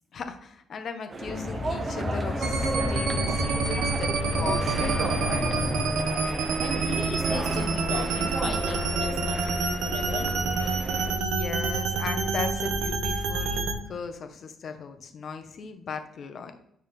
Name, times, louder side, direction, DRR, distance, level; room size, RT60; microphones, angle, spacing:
voice 1, 0.1-5.5 10.9-16.5, left 5 dB, 55° left, 7 dB, 1.2 m, -37 dB
sound 1, 1.1-11.2, right 3 dB, 35° right, 0.9 m, -34 dB
sound 2, 1.2-6.4, left 3 dB, 35° left, 0.7 m, -32 dB
sound 3, 2.4-13.7, right 3 dB, 85° right, 1.3 m, -28 dB
voice 2, 6.6-10.3, left 7 dB, 75° left, 5 dB, 0.6 m, -38 dB
9.2 x 6.2 x 3.6 m, 0.72 s
cardioid pair, 90°, 0 cm